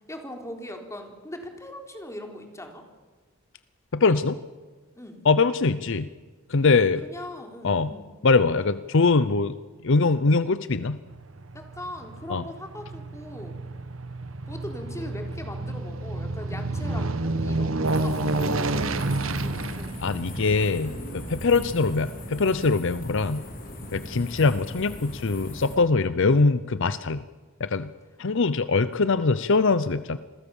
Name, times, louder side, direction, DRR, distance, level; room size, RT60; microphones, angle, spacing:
voice 1, 0.1-2.8 4.9-5.2 7.0-8.1 11.5-13.6 14.5-19.9 25.9-26.3 26.7-26.8, left 1 dB, 15° left, 4 dB, 3.8 m, -40 dB
voice 2, 3.9-4.4 5.2-6.1 6.5-7.0 7.6-7.9 8.2-9.6 9.8-11.0 12.3-12.4 20.0-23.4 23.9-27.2 27.6-27.9 28.2-30.2, left 4 dB, 65° left, 15 dB, 0.7 m, -22 dB
Aircraft, 11.1-23.6 24.0-24.1, right 2 dB, 70° right, 1.4 m, -30 dB
sound 1, 17.8-25.8, left 1 dB, 45° left, 4.4 m, -38 dB
28.5 x 22.0 x 7.2 m, 1.4 s
head